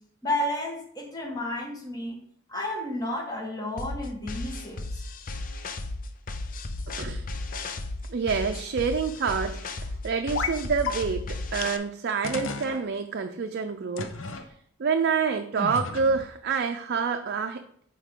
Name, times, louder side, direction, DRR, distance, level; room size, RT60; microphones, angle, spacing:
voice 1, 0.2-2.2 2.5-4.8, left 1 dB, 20° left, 0 dB, 1.6 m, -31 dB
sound 1, 3.8-11.8, left 2 dB, 45° left, 0.6 m, -34 dB
voice 2, 8.1-14.1 14.8-17.6, right 5 dB, 55° right, 5 dB, 0.5 m, -27 dB
sound 2, 10.3-10.6 10.8-10.9 11.6-11.7 12.2-12.7 14.0-14.4 15.6-16.3, left 4 dB, 80° left, 0.7 m, -32 dB
8.3 x 4.7 x 3.7 m, 0.66 s
head